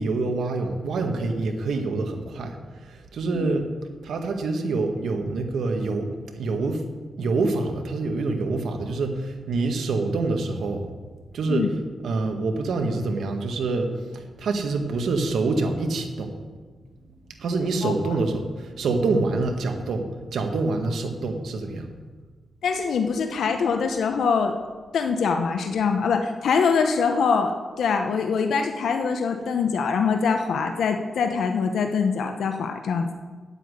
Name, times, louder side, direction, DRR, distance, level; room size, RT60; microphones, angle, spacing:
voice 1, 0.0-2.6 2.8-3.6 4.0-6.8 7.2-10.8 11.3-11.7 12.0-16.3 17.4-21.9, right 3 dB, 85° right, 4 dB, 1.7 m, -26 dB
voice 2, 17.8-18.2 22.6-24.5 24.9-33.1, left 5 dB, 80° left, 6 dB, 0.9 m, -24 dB
9.0 x 8.5 x 9.4 m, 1.4 s
cardioid pair, 100°, 0 cm